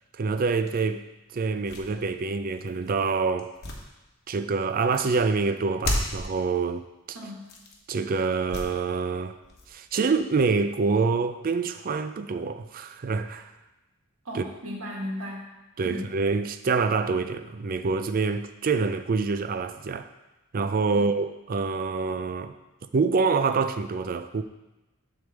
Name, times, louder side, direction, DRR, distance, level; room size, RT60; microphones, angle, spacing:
voice 1, 0.2-1.0 1.3-3.5 4.3-7.2 7.9-9.4 9.7-13.5 14.3-14.5 15.8-20.1 20.5-22.5 22.9-24.4, right 4 dB, 40° right, 0.4 m, -26 dB
sound 1, 0.7-0.8 1.5-2.9 3.4-4.5 4.9-5.2 5.8-6.3 7.4-7.8 8.4-9.0 9.4-10.6, left 1 dB, 45° left, 1.1 m, -34 dB
voice 2, 7.1-7.5 14.2-15.5 15.8-16.1 20.9-21.2, left 1 dB, 75° right, 1.8 m, -36 dB
7.7 x 3.5 x 6.4 m
head